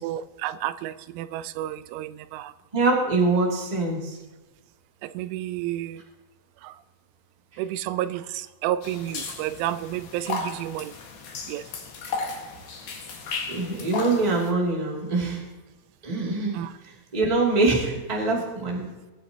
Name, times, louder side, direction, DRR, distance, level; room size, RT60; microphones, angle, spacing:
voice 1, 0.0-2.5 5.0-6.0 6.6-6.7 7.6-10.9 11.5-11.6 16.5-16.7, right 13 dB, 90° right, 15 dB, 3.1 m, -31 dB
voice 2, 2.7-4.2 7.5-7.6 13.5-15.4 16.0-16.6 17.1-18.8, right 3 dB, 15° right, -2 dB, 1.3 m, -24 dB
sound 1, 8.8-14.5, left 4 dB, 55° left, 2.7 m, -35 dB
20.5 x 9.1 x 2.9 m, 1.2 s
omnidirectional pair, 5.5 m